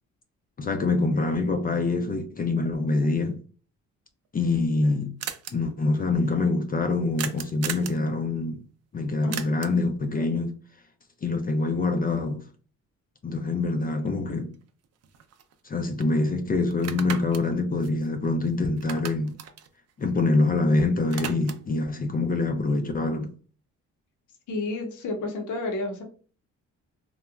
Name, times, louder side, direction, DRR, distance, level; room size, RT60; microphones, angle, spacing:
voice 1, 0.6-3.4 4.3-5.1 5.5-8.6 8.9-10.5 11.2-12.5 13.2-14.5 15.6-19.4 20.0-23.3, left 3 dB, 30° left, 0.4 m, -25 dB
sound 1, 4.3-4.4 4.5-4.6 4.8-4.9 5.2-5.5 7.2-8.0 9.3-9.9 14.1-14.2 14.5-15.7 16.0-16.1 16.7-18.5 18.8-20.6 20.9-21.8, right 9 dB, 55° right, 0.5 m, -37 dB
voice 2, 24.5-26.0, left 2 dB, 80° left, 0.8 m, -31 dB
3.1 x 2.1 x 2.3 m
cardioid pair, 90°, 30 cm